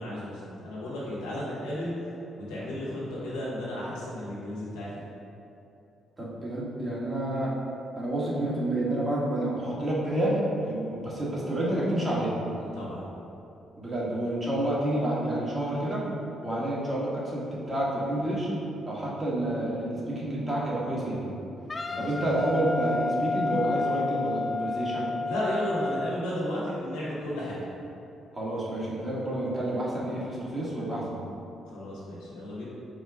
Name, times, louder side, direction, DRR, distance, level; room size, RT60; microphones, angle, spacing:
voice 1, 0.0-1.9 2.3-4.9 12.6-13.0 21.9-22.3 25.2-27.6 31.7-32.7, left 1 dB, 90° left, -8 dB, 1.1 m, -33 dB
voice 2, 6.2-7.5 7.9-12.3 13.8-16.0 16.4-18.5 18.9-21.3 22.0-25.1 28.3-31.3, right 1 dB, 20° right, -7 dB, 1.4 m, -29 dB
Wind instrument woodwind instrument, 21.7-26.1, left 3 dB, 35° left, 0.3 m, -30 dB
4.3 x 2.4 x 4.7 m, 2.8 s
hypercardioid pair, 55°, 0 cm